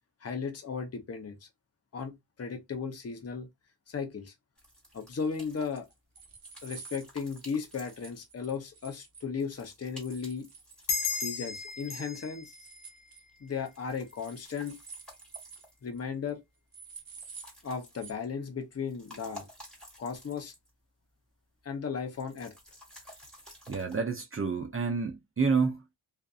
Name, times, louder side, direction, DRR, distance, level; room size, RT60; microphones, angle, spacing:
voice 1, 0.2-1.5 1.9-3.5 3.9-4.3 4.9-5.9 6.6-10.5 11.1-12.5 13.4-14.8 15.8-16.4 17.6-19.5 20.0-20.5 21.6-22.5, left 6 dB, 35° left, 0.7 m, -36 dB
sound 1, 4.6-8.6 9.4-12.4 13.3-16.1 17.0-18.4 18.7-20.8 21.1-21.2 22.1-24.0, equal, ahead, 1.4 m, -53 dB
sound 2, 5.6-9.3 10.0-11.2 11.5-11.9 12.1-13.2 14.1-15.7 16.0-16.1 16.3-16.4 16.7-17.5 17.9-18.1, right 5 dB, 50° right, 0.9 m, -49 dB
sound 3, 10.9-14.0, left 5 dB, 70° left, 0.9 m, -36 dB
voice 2, 23.7-25.9, right 4 dB, 30° right, 0.5 m, -29 dB
2.6 x 2.4 x 2.3 m
wide cardioid pair, 100°, 45 cm